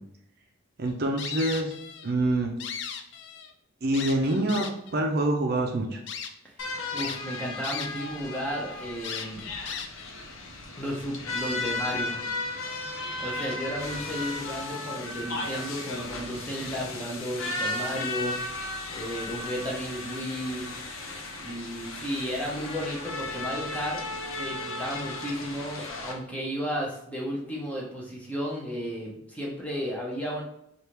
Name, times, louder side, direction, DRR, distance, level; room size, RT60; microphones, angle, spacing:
voice 1, 0.8-1.7 2.0-2.5 3.8-4.7 4.9-6.0, right 1 dB, 50° right, 2 dB, 0.5 m, -26 dB
sound 1, 1.2-2.1 2.4-3.5 3.9-4.9 5.5-5.6 6.1-6.3 7.0-8.1 8.4-8.5 9.0-10.1, left 7 dB, 60° left, 0.4 m, -37 dB
sound 2, 6.6-26.1, left 2 dB, 85° left, 0.7 m, -35 dB
voice 2, 6.9-9.5 10.8-12.2 13.2-18.6 18.9-20.6 21.3-30.4, equal, 5° left, -3 dB, 0.8 m, -33 dB
3.5 x 2.5 x 4.4 m, 0.76 s
head